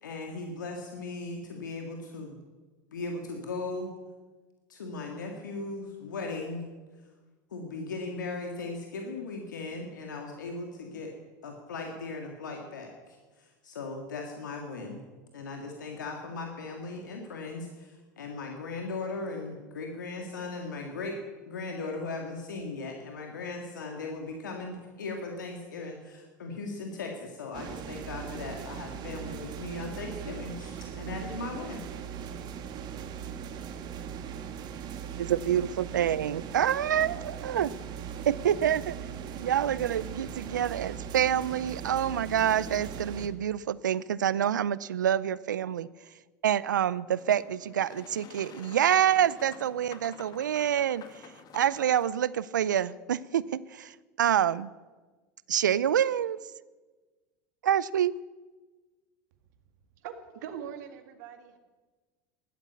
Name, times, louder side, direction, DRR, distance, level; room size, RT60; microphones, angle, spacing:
voice 1, 0.0-2.4 2.9-3.9 4.7-6.7 7.5-11.1 11.4-15.0 15.3-21.2 21.5-31.9, left 3 dB, 90° left, 2 dB, 2.0 m, -38 dB
sound 1, 27.5-43.3, right 8 dB, 45° right, 1.6 m, -39 dB
voice 2, 35.2-37.7 38.3-39.0 39.4-45.9 46.4-54.7 55.5-56.4 57.6-58.1, right 10 dB, 90° right, 19 dB, 0.4 m, -27 dB
Boat Water vehicle, 47.1-52.1, left 6 dB, 40° left, 1.9 m, -50 dB
voice 3, 60.0-61.6, right 8 dB, 75° right, 7 dB, 2.1 m, -42 dB
14.5 x 12.0 x 8.1 m, 1.3 s
hypercardioid pair, 90°, 10 cm